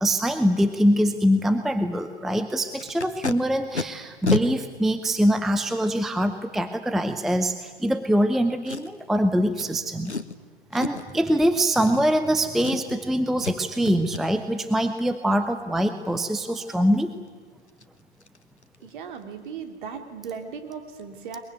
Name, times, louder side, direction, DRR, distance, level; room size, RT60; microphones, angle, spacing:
voice 1, 0.0-10.1 10.7-17.1, equal, ahead, 9 dB, 0.6 m, -23 dB
Packing tape duct tape, 2.8-3.3 3.7-3.8 4.2-4.4 5.2-5.3 8.7-9.1 9.6-9.7 10.0-10.4 10.7-11.1 11.7-12.3 12.6-13.0 13.4-13.6 13.8-14.2 17.3-17.4 17.7-17.8 18.2-18.4 18.6-18.9 19.1-19.2, left 3 dB, 90° left, 1.2 m, -30 dB
voice 2, 18.8-21.4, right 6 dB, 50° right, 6 dB, 3.2 m, -37 dB
22.5 x 22.0 x 9.3 m, 1.5 s
figure-of-eight pair, 110°, 33 cm